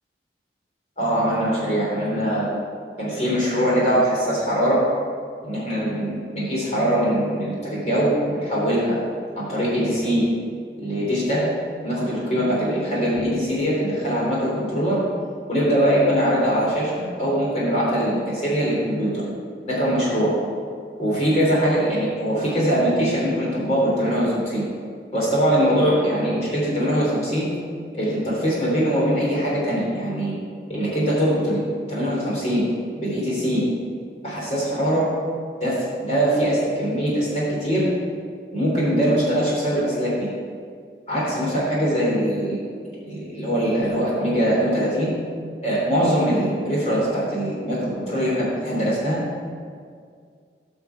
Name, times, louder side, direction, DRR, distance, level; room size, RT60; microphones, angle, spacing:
voice 1, 1.0-2.5 3.0-4.8 5.4-9.0 9.4-10.2 10.8-11.5 11.8-15.0 15.5-19.2 19.7-20.3 21.0-24.6 25.1-27.5 27.9-30.3 30.7-32.6 33.0-33.6 34.2-35.1 35.6-37.9 38.5-40.3 41.1-42.6 43.0-45.1 45.6-49.4, equal, 40° left, -6 dB, 3.4 m, -22 dB
18.0 x 6.2 x 4.7 m, 2.1 s
head